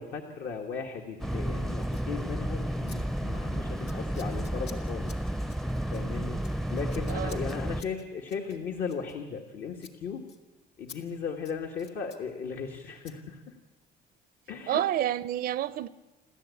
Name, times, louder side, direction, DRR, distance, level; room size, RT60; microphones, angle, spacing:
voice 1, 0.0-5.1 5.9-10.3 10.8-13.5 14.5-14.8, left 6 dB, 65° left, 3 dB, 2.0 m, -37 dB
sound 1, 1.2-7.8, right 1 dB, ahead, 0.6 m, -32 dB
Scissors, 1.8-2.1 2.9-3.0 3.2-3.5 3.8-9.5 9.8-10.0 10.3-10.4 10.9-11.0 11.3-12.2 13.0-13.2, left 6 dB, 85° left, 1.8 m, -51 dB
voice 2, 7.1-7.5 14.7-15.9, right 12 dB, 60° right, 16 dB, 0.6 m, -29 dB
27.5 x 13.5 x 8.5 m, 1.2 s
cardioid pair, 110°, 17 cm